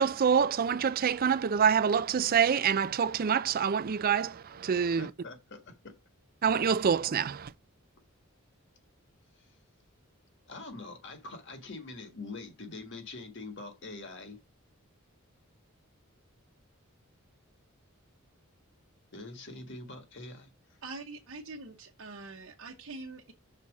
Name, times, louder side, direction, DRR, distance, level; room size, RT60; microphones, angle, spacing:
voice 1, 0.0-5.1 6.4-7.5, right 7 dB, 45° right, 0.4 m, -26 dB
voice 2, 4.9-5.9 10.5-14.4 19.1-20.5, left 3 dB, 55° left, 1.6 m, -44 dB
voice 3, 20.8-23.3, right 3 dB, 60° right, 1.0 m, -44 dB
6.1 x 4.1 x 6.1 m
head